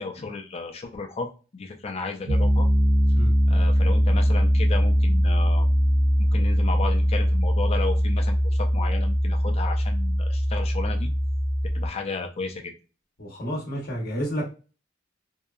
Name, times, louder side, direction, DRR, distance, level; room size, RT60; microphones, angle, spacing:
voice 1, 0.0-2.7 3.5-5.7 6.2-11.1 11.7-12.7, left 4 dB, 35° left, 3 dB, 0.4 m, -33 dB
Piano, 2.3-11.9, equal, 85° right, 0.6 m, -21 dB
voice 2, 13.2-14.4, equal, 50° left, -3 dB, 0.8 m, -30 dB
2.7 x 2.2 x 2.3 m, 0.34 s
head